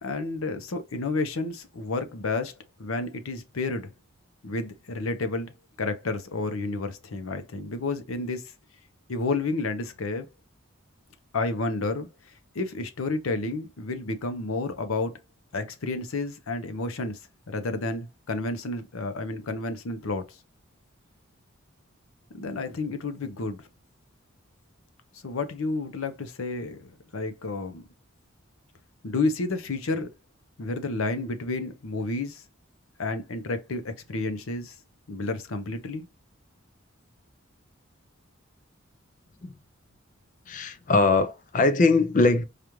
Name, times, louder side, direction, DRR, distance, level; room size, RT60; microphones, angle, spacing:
voice 1, 0.0-2.5 2.8-3.9 4.4-5.5 5.8-8.4 9.1-10.3 11.3-15.1 15.5-17.2 17.5-20.4 22.3-23.7 25.2-26.9 27.1-27.8 29.0-30.1 30.6-32.4 33.0-34.7 35.1-36.1, left 3 dB, 85° left, 0.7 m, -30 dB
voice 2, 40.5-42.4, left 3 dB, 40° left, 0.4 m, -21 dB
4.9 x 2.4 x 3.0 m
head